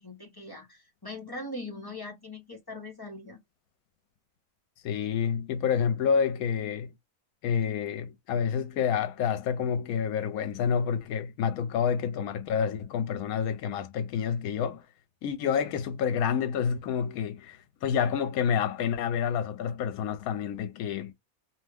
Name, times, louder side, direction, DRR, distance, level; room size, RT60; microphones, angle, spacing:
voice 1, 0.0-3.4, left 2 dB, 20° left, 0.6 m, -41 dB
voice 2, 4.8-6.9 7.4-14.8 15.2-21.1, left 7 dB, 75° left, 1.0 m, -28 dB
2.8 x 2.1 x 3.3 m
omnidirectional pair, 1.6 m